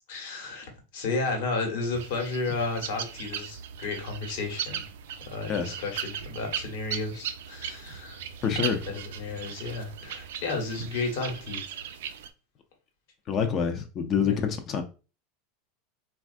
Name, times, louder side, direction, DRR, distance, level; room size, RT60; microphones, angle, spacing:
voice 1, 0.1-0.6 0.9-4.8 5.2-8.2 8.9-11.6 14.2-14.4, left 3 dB, 70° left, 1.1 m, -32 dB
sound 1, 2.0-12.3, right 9 dB, 75° right, 0.3 m, -38 dB
voice 2, 8.4-8.8 13.3-14.8, left 7 dB, 40° left, 0.5 m, -26 dB
3.1 x 2.3 x 2.5 m
hypercardioid pair, 105°, 0 cm